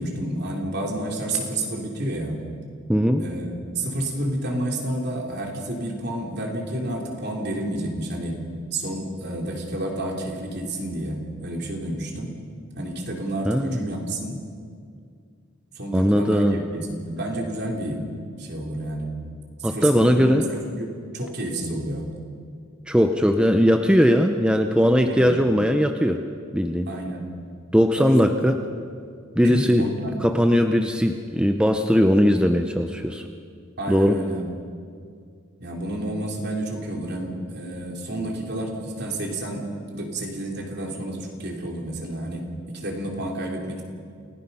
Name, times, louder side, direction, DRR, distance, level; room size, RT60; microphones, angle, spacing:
voice 1, 0.0-2.4 3.2-8.3 8.7-12.3 12.8-14.4 15.7-18.1 18.4-19.1 19.6-22.0 25.1-25.3 26.9-27.3 27.9-28.4 29.4-30.2 33.8-34.5 35.6-43.8, right 1 dB, 55° right, 0 dB, 3.3 m, -30 dB
voice 2, 2.9-3.2 13.4-13.8 15.9-16.6 19.6-20.4 22.9-26.2 26.5-26.9 27.7-28.6 29.4-29.9 30.2-33.2 33.9-34.2, equal, 5° right, 5 dB, 0.7 m, -19 dB
28.5 x 17.5 x 5.6 m, 2.2 s
head